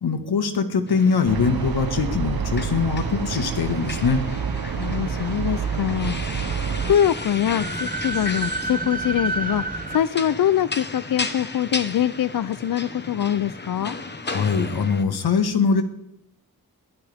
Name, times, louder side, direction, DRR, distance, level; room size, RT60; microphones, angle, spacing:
voice 1, 0.0-4.2 14.3-15.8, left 5 dB, 90° left, 7 dB, 1.7 m, -22 dB
sound 1, 0.9-15.0, left 3 dB, 30° left, 1.1 m, -35 dB
sound 2, 1.2-7.0, right 7 dB, 70° right, 1.0 m, -28 dB
sound 3, 3.4-10.0, right 3 dB, 25° right, 0.7 m, -32 dB
voice 2, 4.7-6.5 6.9-14.0, left 10 dB, 65° left, 15 dB, 0.5 m, -24 dB
21.5 x 13.5 x 3.6 m, 0.78 s
wide cardioid pair, 125°, 37 cm